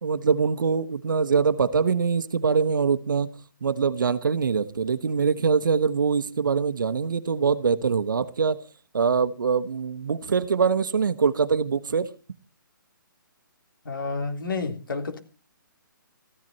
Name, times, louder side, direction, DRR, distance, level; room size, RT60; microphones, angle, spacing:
voice 1, 0.0-3.3 3.6-8.6 8.9-12.1, right 5 dB, 70° right, 1.2 m, -23 dB
voice 2, 13.8-15.2, left 4 dB, 75° left, 3.4 m, -30 dB
14.5 x 11.0 x 5.5 m
hypercardioid pair, 170°, 11 cm